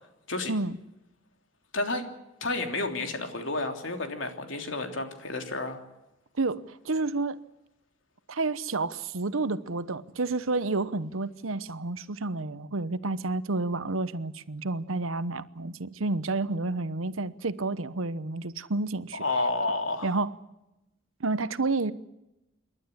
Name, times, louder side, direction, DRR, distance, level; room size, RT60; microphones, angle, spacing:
voice 1, 1.7-2.1 2.4-5.8 19.1-20.1, left 2 dB, 65° left, 3.2 m, -30 dB
voice 2, 6.4-7.4 8.3-19.2 20.0-20.3 21.2-21.9, right 3 dB, 80° right, 1.0 m, -30 dB
28.0 x 12.0 x 9.9 m
head